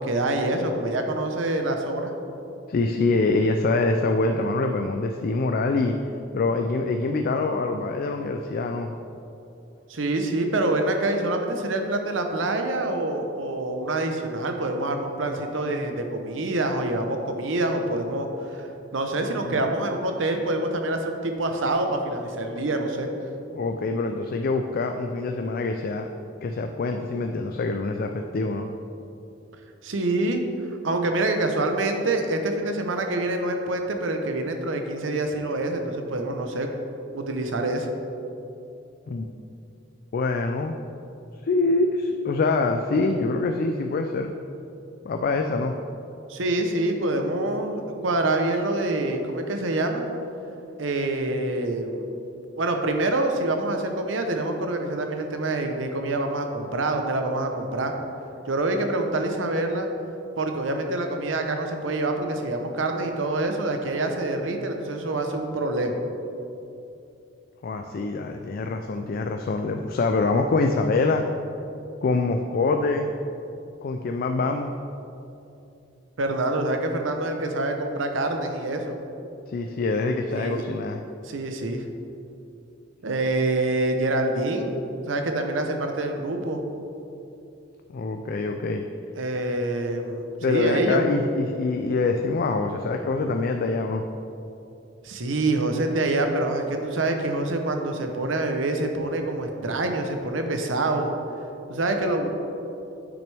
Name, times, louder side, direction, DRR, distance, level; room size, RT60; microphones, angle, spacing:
voice 1, 0.0-2.1 9.9-23.1 29.8-30.4 30.8-36.7 37.1-37.9 46.3-50.0 50.8-52.0 52.6-57.9 58.5-59.9 60.4-66.0 76.2-79.0 80.3-80.6 81.2-81.8 83.0-84.7 85.1-86.6 89.2-91.0 95.0-101.1 101.7-102.3, right 2 dB, 90° right, 5 dB, 0.8 m, -26 dB
voice 2, 2.7-5.9 6.3-8.9 19.4-19.6 23.5-26.1 26.4-28.7 39.1-39.3 40.1-40.7 41.4-44.3 45.0-45.7 67.6-71.3 72.0-73.1 73.8-74.7 79.5-81.0 87.9-88.8 90.4-94.0, left 3 dB, 50° left, 5 dB, 0.4 m, -25 dB
8.7 x 6.1 x 3.4 m, 2.8 s
head